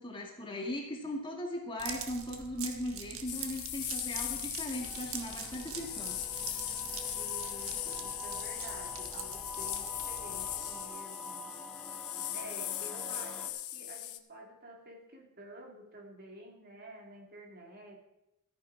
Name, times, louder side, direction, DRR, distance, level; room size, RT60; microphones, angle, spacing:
voice 1, 0.0-6.2, left 1 dB, 25° left, 0 dB, 2.1 m, -38 dB
sound 1, 1.8-11.0, right 7 dB, 65° right, 1.2 m, -44 dB
sound 2, 3.3-14.2, left 13 dB, 70° left, 0.8 m, -39 dB
sound 3, 4.8-13.5, equal, 5° left, 1.0 m, -47 dB
voice 2, 7.1-11.5 12.3-18.0, right 1 dB, 45° right, 1 dB, 2.1 m, -50 dB
14.0 x 9.4 x 4.7 m, 0.90 s
head